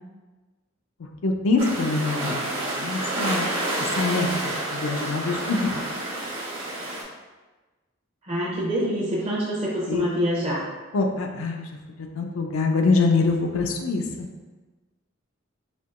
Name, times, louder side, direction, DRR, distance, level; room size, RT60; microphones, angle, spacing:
voice 1, 1.2-3.5 4.0-5.8 9.9-10.0 10.9-11.7 12.1-14.3, left 3 dB, 80° left, 3 dB, 0.4 m, -24 dB
sound 1, 1.6-7.0, right 1 dB, 80° right, 1.0 m, -29 dB
voice 2, 8.2-10.6, equal, 30° right, -8 dB, 0.6 m, -25 dB
4.4 x 2.9 x 2.3 m, 1.2 s
head